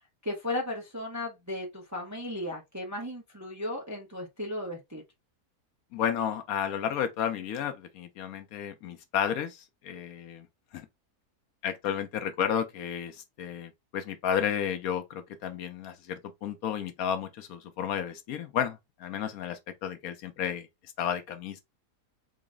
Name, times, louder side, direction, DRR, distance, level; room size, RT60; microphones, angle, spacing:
voice 1, 0.2-5.0, left 1 dB, 20° right, 0.5 m, -35 dB
voice 2, 5.9-10.5 10.7-10.9 11.6-20.7 21.0-21.6, left 9 dB, 70° left, 1.0 m, -32 dB
3.9 x 2.1 x 3.6 m
omnidirectional pair, 1.7 m